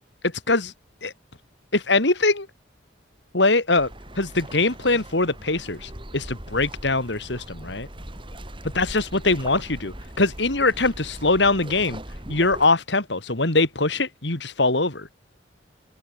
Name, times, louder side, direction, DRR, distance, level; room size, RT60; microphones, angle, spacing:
voice 1, 1.7-2.5 3.3-3.9 4.2-7.9 8.7-12.0 12.3-15.1, left 3 dB, 65° left, 2.8 m, -22 dB
sound 1, 3.8-12.7, right 1 dB, 25° right, 4.8 m, -40 dB
open air
head